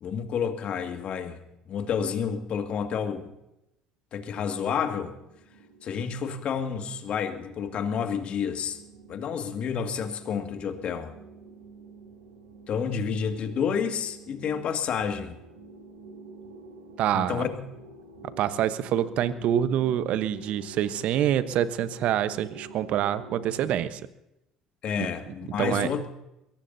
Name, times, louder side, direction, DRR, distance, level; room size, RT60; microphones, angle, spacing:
voice 1, 0.0-1.4 1.7-3.3 4.1-5.1 5.8-8.8 9.1-11.1 12.7-15.4 17.1-17.7 24.8-26.1, left 7 dB, 50° left, 6 dB, 2.1 m, -30 dB
sound 1, 5.0-23.9, right 3 dB, 80° right, 3.0 m, -48 dB
voice 2, 17.0-17.5 18.4-24.0 25.0-25.1 25.6-25.9, right 10 dB, 60° right, 13 dB, 1.1 m, -26 dB
22.5 x 17.5 x 2.8 m, 0.88 s
hypercardioid pair, 65°, 2 cm